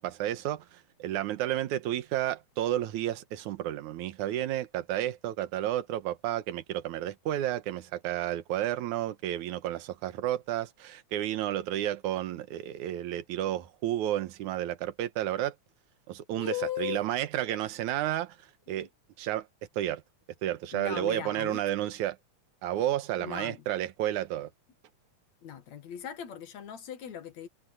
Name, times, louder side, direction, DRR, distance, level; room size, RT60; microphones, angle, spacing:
voice 1, 0.0-15.6 16.1-18.4 18.7-18.9 19.2-19.5 19.8-20.0 20.4-22.2 22.6-24.5, right 12 dB, 75° right, 2.4 m, -31 dB
voice 2, 16.4-17.0 18.7-18.9 20.7-21.6 23.2-23.6 25.4-27.5, left 10 dB, 65° left, 2.8 m, -38 dB
omnidirectional pair, 3.6 m